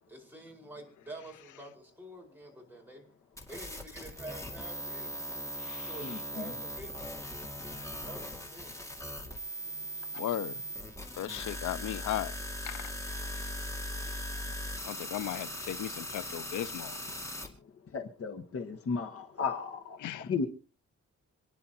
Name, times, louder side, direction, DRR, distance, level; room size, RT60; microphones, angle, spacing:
voice 1, 0.1-3.1 3.5-5.1 5.8-7.1 8.0-8.7, right 2 dB, 5° right, 5.1 m, -47 dB
sound 1, 3.4-17.5, equal, 10° left, 2.4 m, -39 dB
voice 2, 6.0-6.5 17.9-20.5, left 5 dB, 50° left, 1.4 m, -35 dB
voice 3, 10.1-10.5 11.2-12.3 12.7-12.9 14.9-17.0 20.0-20.3, left 12 dB, 90° left, 0.6 m, -36 dB
27.5 x 10.5 x 3.0 m
wide cardioid pair, 160°, 29 cm